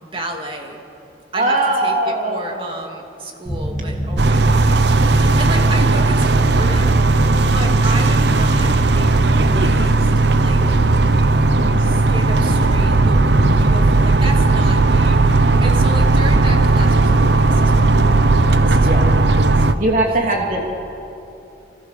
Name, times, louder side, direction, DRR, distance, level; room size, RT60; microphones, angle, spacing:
voice 1, 0.1-0.8 1.3-10.6 11.8-13.2 13.5-19.1 19.5-19.7 20.2-20.6, right 1 dB, 30° right, 2 dB, 2.6 m, -32 dB
voice 2, 1.3-2.8 18.8-19.2 19.7-20.6, right 2 dB, 45° right, 0 dB, 2.8 m, -20 dB
sound 1, 3.5-16.7, equal, 5° right, 5.5 m, -25 dB
sound 2, 4.2-19.7, right 3 dB, 75° right, 0.9 m, -15 dB
28.5 x 26.0 x 6.8 m, 2.8 s
head